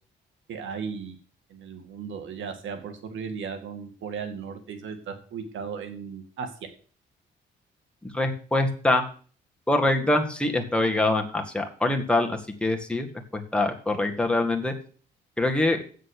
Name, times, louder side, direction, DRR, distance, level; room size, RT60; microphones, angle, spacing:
voice 1, 0.5-1.2 1.5-6.5, right 6 dB, 75° right, 7 dB, 2.2 m, -36 dB
voice 2, 8.1-9.0 9.7-13.1 13.3-14.7 15.4-15.8, left 2 dB, 5° left, 2 dB, 2.0 m, -24 dB
7.7 x 6.6 x 8.2 m, 0.42 s
cardioid pair, 90°, 20 cm